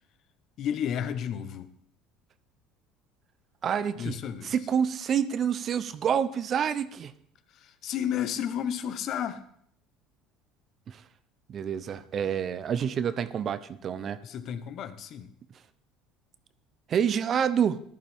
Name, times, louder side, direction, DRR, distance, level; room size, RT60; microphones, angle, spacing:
voice 1, 0.6-1.7 4.0-4.5 7.5-9.4 14.2-15.3, left 9 dB, 50° left, 0.9 m, -32 dB
voice 2, 3.6-4.2 4.4-7.1 10.9-11.0 11.5-14.2 16.9-17.8, right 8 dB, 40° right, 0.7 m, -28 dB
14.5 x 11.0 x 3.6 m
supercardioid pair, 120°, 0 cm